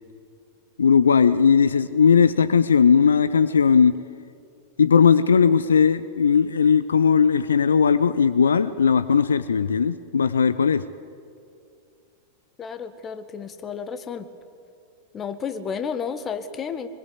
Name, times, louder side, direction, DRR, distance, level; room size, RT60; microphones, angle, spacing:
voice 1, 0.8-4.0 4.8-10.8, left 6 dB, 70° left, 15 dB, 0.6 m, -18 dB
voice 2, 12.6-14.2 15.1-16.9, left 6 dB, 25° left, 10 dB, 1.6 m, -31 dB
24.0 x 21.5 x 8.3 m, 2.5 s
figure-of-eight pair, 90°, 0 cm